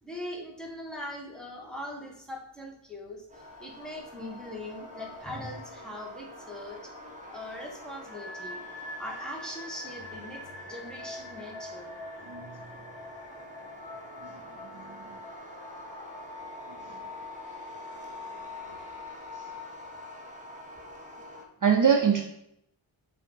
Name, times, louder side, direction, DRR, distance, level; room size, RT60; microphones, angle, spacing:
voice 1, 0.0-6.9 7.3-8.6 9.0-12.0, left 1 dB, ahead, -1 dB, 1.4 m, -41 dB
sound 1, 3.3-21.4, left 2 dB, 15° right, 1.3 m, -45 dB
sound 2, 4.1-18.9, left 1 dB, 65° left, 1.0 m, -47 dB
voice 2, 12.3-12.6 14.7-15.2 21.6-22.2, right 7 dB, 40° right, 3 dB, 0.6 m, -24 dB
6.6 x 2.8 x 5.4 m, 0.76 s
wide cardioid pair, 65°, 49 cm